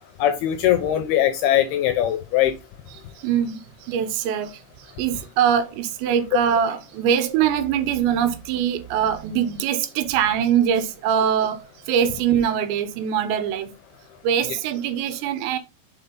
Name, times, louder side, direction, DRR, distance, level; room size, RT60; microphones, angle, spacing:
voice 1, 0.2-2.5, left 11 dB, 80° left, 2.3 m, -20 dB
voice 2, 3.2-4.6 5.0-13.7 14.2-15.6, right 8 dB, 85° right, 3.0 m, -23 dB
7.0 x 4.3 x 3.8 m
omnidirectional pair, 5.1 m